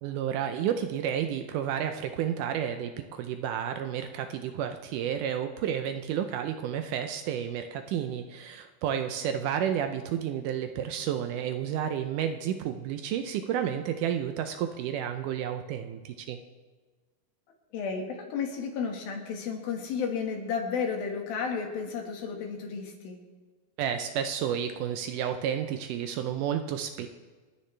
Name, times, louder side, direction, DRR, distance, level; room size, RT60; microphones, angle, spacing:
voice 1, 0.0-16.4 23.8-27.1, right 9 dB, 80° right, 7 dB, 1.9 m, -31 dB
voice 2, 17.7-23.2, left 6 dB, 85° left, 2 dB, 3.5 m, -32 dB
29.0 x 9.8 x 3.3 m, 1.4 s
omnidirectional pair, 4.1 m